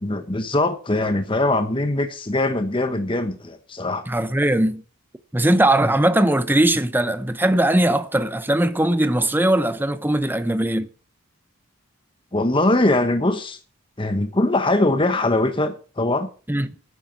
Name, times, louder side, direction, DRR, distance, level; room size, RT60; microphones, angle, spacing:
voice 1, 0.0-4.0 12.3-13.6 14.0-16.3, left 2 dB, 25° left, 1.2 m, -21 dB
voice 2, 4.1-4.8 5.3-10.9 16.5-16.7, right 1 dB, 10° right, 0.9 m, -20 dB
11.0 x 9.8 x 7.4 m
head